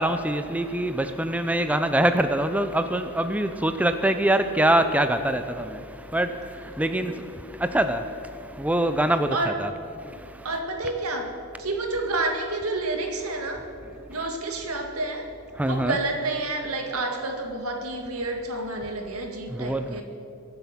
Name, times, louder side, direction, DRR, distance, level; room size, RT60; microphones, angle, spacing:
voice 1, 0.0-9.7 10.0-10.5 15.6-15.9 19.5-20.0, right 1 dB, 5° right, 0.5 m, -24 dB
voice 2, 10.4-13.7 14.1-15.3 15.6-20.0, right 2 dB, 85° right, 2.0 m, -29 dB
23.0 x 7.8 x 5.9 m
head